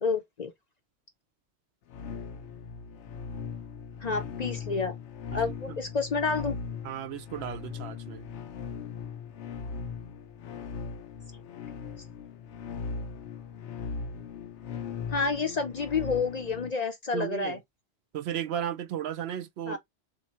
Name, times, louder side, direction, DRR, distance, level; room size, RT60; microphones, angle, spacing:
voice 1, 0.0-0.5 4.0-4.9 5.3-6.6 15.1-17.6 19.7-19.8, left 4 dB, 50° left, 0.6 m, -29 dB
sound 1, 1.9-16.7, left 6 dB, 90° left, 0.9 m, -39 dB
voice 2, 6.8-8.2 17.1-17.6 18.1-19.8, right 10 dB, 70° right, 0.8 m, -34 dB
3.6 x 2.8 x 4.2 m
omnidirectional pair, 1.1 m